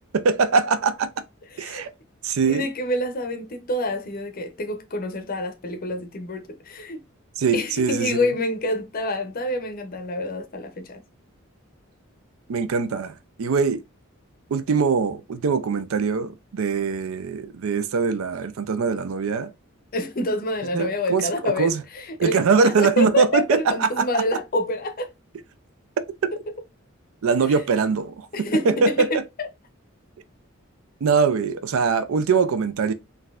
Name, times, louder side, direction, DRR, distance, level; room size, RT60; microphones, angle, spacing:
voice 1, 0.1-1.1 1.6-1.9 2.2-2.7 7.4-8.2 12.5-13.8 14.5-19.5 20.7-21.8 22.2-24.2 26.0-26.3 27.2-28.3 28.6-29.2 31.0-32.9, right 5 dB, 80° right, 0.4 m, -22 dB
voice 2, 1.5-1.9 2.4-7.0 7.5-11.0 19.9-25.1 27.5-27.6 28.3-29.5, left 1 dB, 45° left, 0.6 m, -27 dB
3.9 x 2.7 x 2.3 m
head